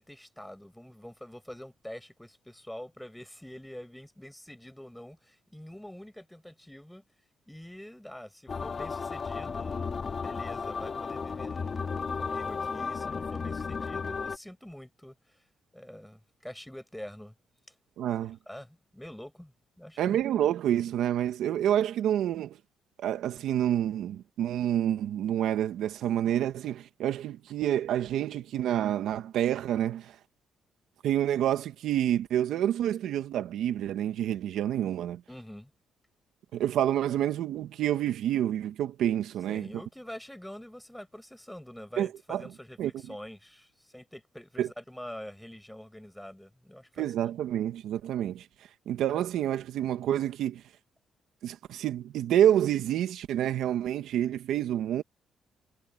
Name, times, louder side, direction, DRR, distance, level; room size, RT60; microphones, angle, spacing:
voice 1, 0.0-7.0 7.5-11.8 12.1-15.4 15.7-17.3 18.5-20.2 35.3-35.7 39.5-47.1, left 1 dB, 5° left, 6.5 m, -45 dB
sound 1, 8.5-14.4, left 5 dB, 40° left, 3.2 m, -34 dB
voice 2, 18.0-18.4 20.0-22.6 23.0-30.2 31.0-35.2 36.5-39.7 42.0-42.5 42.8-42.9 44.6-44.7 47.0-48.5 48.9-50.6 51.4-55.0, right 11 dB, 80° right, 1.4 m, -28 dB
cardioid pair, 90°, 0 cm